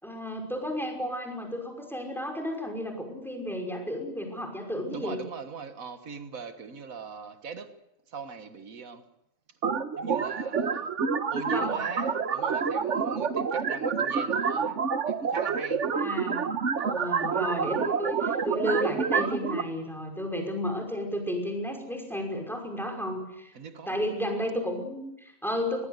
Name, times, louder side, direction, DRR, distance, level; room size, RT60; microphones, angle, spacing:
voice 1, 0.0-5.2 11.3-11.8 15.9-16.5 16.9-23.5 23.9-25.8, equal, ahead, 5.7 m, -32 dB
voice 2, 4.9-7.8 8.1-9.0 10.0-10.9 11.3-14.8 15.1-15.9 16.8-17.2 23.5-24.1, right 5 dB, 90° right, 1.9 m, -41 dB
sound 1, 9.6-19.6, right 6 dB, 65° right, 1.5 m, -28 dB
24.5 x 20.0 x 8.2 m
omnidirectional pair, 1.4 m